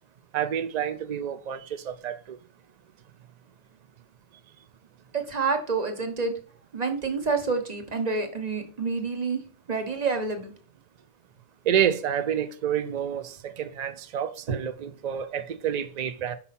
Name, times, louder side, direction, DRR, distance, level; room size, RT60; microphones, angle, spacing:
voice 1, 0.3-1.6 1.9-2.4 11.7-16.4, right 9 dB, 75° right, 0.3 m, -28 dB
voice 2, 5.1-6.3 6.7-9.4 9.7-10.5 14.5-14.6, right 4 dB, 35° right, 1.2 m, -28 dB
5.7 x 5.5 x 4.2 m
omnidirectional pair, 1.3 m